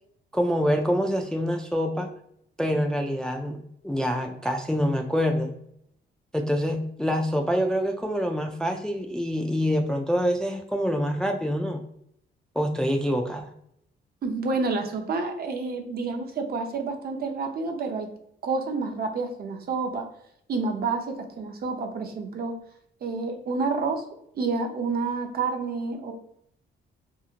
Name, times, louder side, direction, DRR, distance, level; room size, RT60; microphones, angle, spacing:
voice 1, 0.3-2.1 2.6-3.6 3.8-5.5 6.3-11.8 12.6-13.5, equal, 5° left, 3 dB, 0.3 m, -26 dB
voice 2, 14.2-18.1 18.4-20.1 20.5-22.5 23.0-24.0 24.3-26.1, right 4 dB, 50° right, 4 dB, 0.6 m, -29 dB
2.8 x 2.7 x 2.4 m, 0.72 s
cardioid pair, 90°, 20 cm